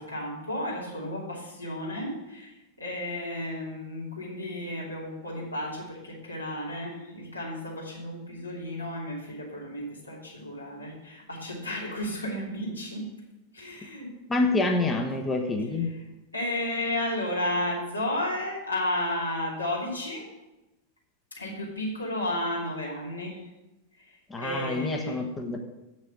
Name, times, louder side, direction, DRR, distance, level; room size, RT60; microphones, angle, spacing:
voice 1, 0.0-13.1 13.5-14.1 15.9-16.0 16.3-20.2 21.3-23.4 24.0-25.2, left 1 dB, 80° left, -4 dB, 2.9 m, -33 dB
voice 2, 14.3-15.9 24.3-25.6, left 2 dB, 15° left, 2 dB, 1.1 m, -27 dB
8.2 x 6.3 x 7.5 m, 1.0 s
figure-of-eight pair, 90°, 0 cm